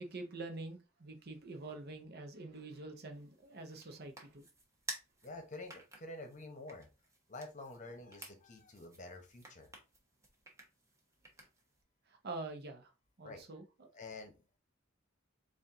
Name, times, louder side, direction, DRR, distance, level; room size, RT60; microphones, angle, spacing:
voice 1, 0.0-4.4 12.1-12.9 13.2-13.9, right 2 dB, 50° right, 0.8 m, -46 dB
sound 1, 3.1-11.8, right 2 dB, 15° right, 1.0 m, -53 dB
voice 2, 5.2-6.9 7.3-9.7 13.2-13.4 13.9-14.6, left 2 dB, 40° left, 1.0 m, -48 dB
4.2 x 2.6 x 3.7 m
head